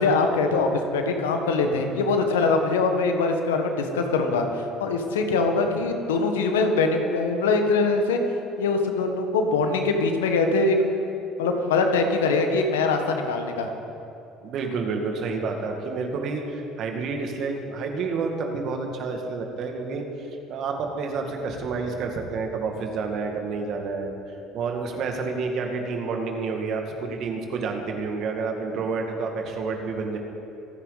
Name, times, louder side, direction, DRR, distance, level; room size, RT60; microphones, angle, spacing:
voice 1, 0.0-4.5 4.8-8.2 8.6-10.8 11.4-13.7, left 3 dB, 80° left, 5 dB, 1.5 m, -23 dB
voice 2, 14.4-30.2, right 4 dB, 55° right, 3 dB, 2.3 m, -29 dB
26.5 x 9.9 x 4.2 m, 2.8 s
hypercardioid pair, 60°, 0 cm